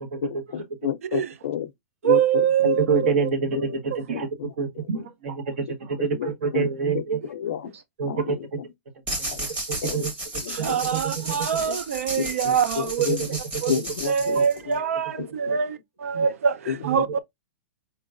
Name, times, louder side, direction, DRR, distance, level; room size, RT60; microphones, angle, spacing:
voice 1, 0.0-0.4 2.9-4.3 4.6-7.2 8.0-8.4 9.7-10.1 10.6-10.7 10.9-11.0 11.3-11.4 14.3-14.4 16.1-16.2 16.8-16.9, right 5 dB, 65° right, 1.1 m, -27 dB
voice 2, 0.5-1.7 2.0-3.1 4.1-4.5 6.1-6.7 6.9-7.0 7.3-7.7 8.1-8.4 9.3-9.4 9.8-10.1 10.4-10.8 11.7-11.8 12.2-13.2 13.7-14.4 15.2-15.5 16.7-16.8, left 9 dB, 75° left, 0.4 m, -30 dB
voice 3, 2.0-3.3 10.5-13.2 13.6-13.7 14.0-17.2, right 8 dB, 85° right, 0.5 m, -24 dB
sound 1, 9.1-14.8, right 1 dB, 20° right, 1.2 m, -33 dB
4.4 x 2.9 x 2.4 m
supercardioid pair, 175°, 7 cm